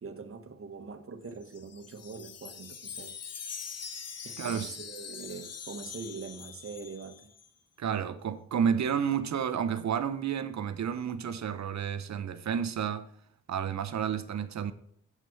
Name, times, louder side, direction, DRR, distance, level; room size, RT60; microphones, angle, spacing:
voice 1, 0.0-3.2 4.2-7.3, right 4 dB, 45° right, 1.3 m, -43 dB
Wind chime, 1.3-7.5, left 7 dB, 55° left, 1.0 m, -43 dB
voice 2, 4.4-4.7 7.8-13.1 13.5-14.7, right 8 dB, 65° right, 0.8 m, -31 dB
7.8 x 6.0 x 7.0 m
cardioid pair, 55°, 30 cm